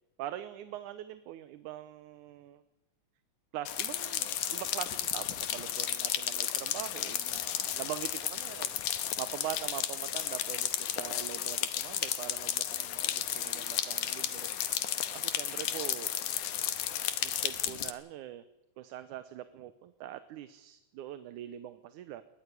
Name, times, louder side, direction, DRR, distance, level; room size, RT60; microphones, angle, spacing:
voice 1, 0.2-2.6 3.5-5.3 5.5-8.7 9.2-16.1 17.2-18.4 18.8-22.2, right 12 dB, 85° right, 12 dB, 2.4 m, -43 dB
sound 1, 3.7-17.9, left 11 dB, 85° left, 2.7 m, -33 dB
sound 2, 9.7-12.7, right 3 dB, 70° right, 8.3 m, -62 dB
sound 3, 12.9-17.9, equal, 5° right, 3.9 m, -54 dB
21.5 x 17.5 x 9.8 m, 0.90 s
omnidirectional pair, 3.4 m